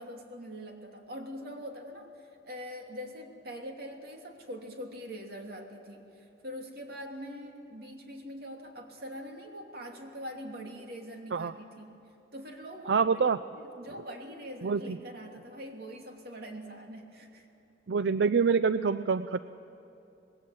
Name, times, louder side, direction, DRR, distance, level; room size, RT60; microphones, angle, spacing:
voice 1, 0.0-12.0 12.3-13.0 13.5-17.5, equal, 60° right, 2 dB, 2.8 m, -43 dB
voice 2, 12.9-13.4 14.6-15.0 17.9-19.4, right 5 dB, 80° right, 13 dB, 0.5 m, -26 dB
26.0 x 20.0 x 7.8 m, 2.8 s
head